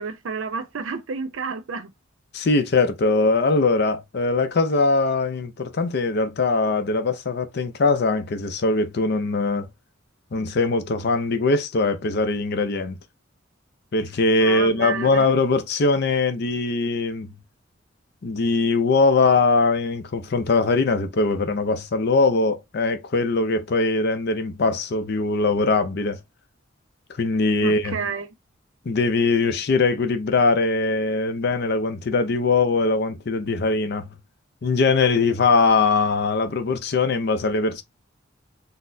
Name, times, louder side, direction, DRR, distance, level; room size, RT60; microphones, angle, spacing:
voice 1, 0.0-1.9 14.4-15.3 27.6-28.3, right 5 dB, 80° right, 0.5 m, -30 dB
voice 2, 2.3-9.7 10.3-13.0 13.9-17.3 18.2-26.2 27.2-28.0 28.9-34.1 34.6-37.8, left 3 dB, 55° left, 0.5 m, -21 dB
4.0 x 2.0 x 2.6 m
head